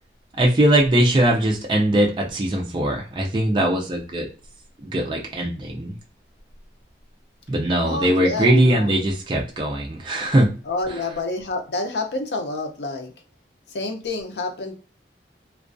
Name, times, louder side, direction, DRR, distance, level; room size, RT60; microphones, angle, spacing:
voice 1, 0.4-4.3 4.8-5.9 7.5-10.5, right 1 dB, 25° right, 0 dB, 0.4 m, -20 dB
voice 2, 7.8-9.0 10.7-13.1 13.7-14.7, left 2 dB, 75° left, 4 dB, 0.5 m, -28 dB
2.3 x 2.2 x 2.4 m, 0.38 s
head